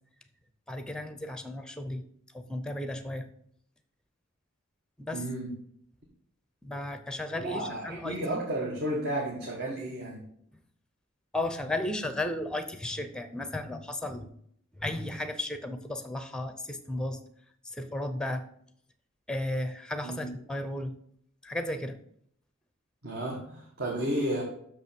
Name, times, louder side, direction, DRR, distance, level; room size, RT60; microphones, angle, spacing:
voice 1, 0.7-2.0 2.3-3.3 5.0-5.2 6.6-8.4 11.3-14.3 14.8-17.2 17.6-18.4 19.3-20.9 21.4-22.0, left 1 dB, 5° left, 9 dB, 0.6 m, -34 dB
voice 2, 5.1-5.5 7.3-10.2 20.0-20.3 23.0-24.4, right 1 dB, 50° right, -2 dB, 1.5 m, -32 dB
6.4 x 5.4 x 6.8 m, 0.68 s
head